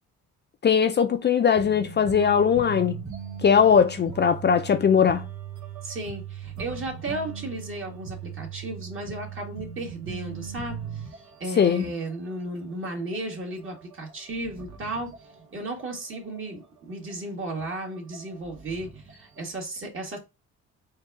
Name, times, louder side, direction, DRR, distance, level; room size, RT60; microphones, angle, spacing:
voice 1, 0.6-3.0 3.4-5.3 11.6-11.9, left 7 dB, 35° left, 0.5 m, -20 dB
sound 1, 1.5-11.8 12.0-12.3 12.6-12.7 13.1-15.8 16.1-16.6 17.1-17.2 17.6-19.5, right 8 dB, 70° right, 1.3 m, -39 dB
voice 2, 5.8-15.1 15.5-20.2, right 1 dB, 40° right, 1.9 m, -34 dB
4.5 x 2.4 x 4.7 m
cardioid pair, 90°, 30 cm